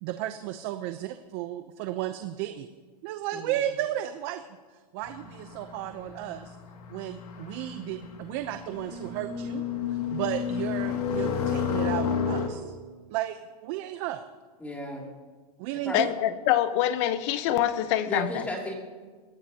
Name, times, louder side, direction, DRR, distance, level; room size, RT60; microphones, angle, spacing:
voice 1, 0.0-2.7 3.0-4.4 4.7-6.6 6.9-9.6 9.9-12.7 13.1-14.2 15.6-16.1, right 13 dB, 40° right, 0.7 m, -34 dB
sound 1, 5.0-12.5, left 7 dB, 65° left, 2.3 m, -31 dB
voice 2, 14.6-15.1 15.8-16.1 18.0-18.7, equal, 5° left, 2.8 m, -35 dB
voice 3, 15.9-18.4, left 12 dB, 45° left, 1.0 m, -25 dB
22.0 x 17.5 x 2.9 m
supercardioid pair, 150°, 21 cm